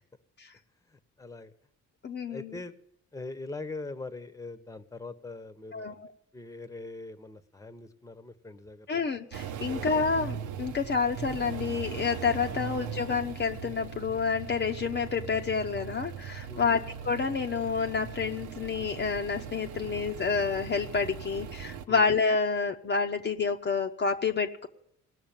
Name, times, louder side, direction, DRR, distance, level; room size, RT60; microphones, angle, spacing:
voice 1, 0.9-1.5 2.3-2.7 3.1-6.0 6.3-9.1 9.7-10.0 12.5-12.7 16.5-16.9 21.9-22.1, left 2 dB, 10° left, 12 dB, 1.0 m, -42 dB
voice 2, 2.0-2.6 5.7-6.1 8.9-24.7, left 5 dB, 35° left, 3 dB, 0.8 m, -29 dB
sound 1, 9.3-21.9, right 8 dB, 80° right, 0.9 m, -39 dB
17.5 x 6.3 x 8.9 m, 0.77 s
cardioid pair, 90°, 30 cm